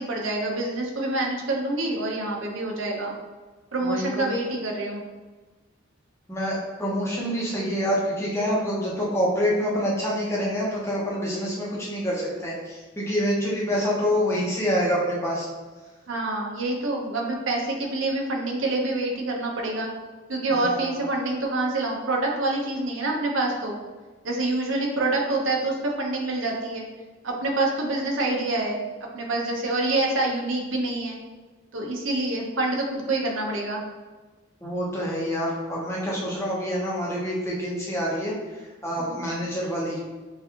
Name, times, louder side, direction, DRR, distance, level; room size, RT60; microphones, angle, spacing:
voice 1, 0.0-3.1 3.7-5.0 16.1-19.9 20.3-23.8 24.2-26.8 27.2-28.8 29.1-31.2 31.7-33.8 39.0-39.3, right 2 dB, 70° right, 0 dB, 0.8 m, -26 dB
voice 2, 3.8-4.3 6.3-15.5 20.5-21.0 34.6-38.3 38.8-40.0, equal, 15° left, -5 dB, 0.9 m, -26 dB
5.9 x 2.5 x 2.9 m, 1.3 s
head